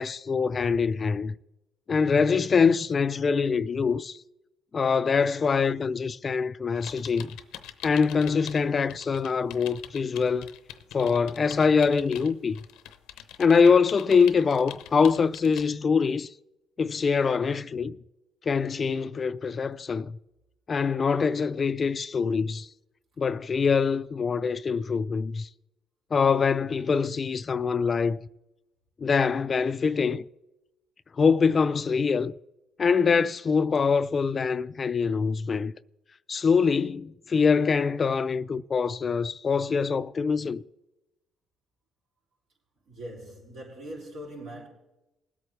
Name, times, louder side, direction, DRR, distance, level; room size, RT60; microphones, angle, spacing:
voice 1, 0.0-1.3 1.9-4.2 4.7-7.3 7.8-10.5 10.9-12.6 13.4-16.3 16.8-17.9 18.5-20.2 20.7-22.7 23.2-25.5 26.1-28.2 29.0-30.2 31.2-32.3 32.8-35.7 36.3-40.6, left 5 dB, 40° left, 0.4 m, -24 dB
sound 1, 6.8-8.6 8.9-15.7, left 11 dB, 90° left, 0.7 m, -44 dB
voice 2, 42.9-44.7, right 1 dB, 70° right, 5.3 m, -41 dB
20.5 x 8.5 x 3.3 m
cardioid pair, 85°, 0 cm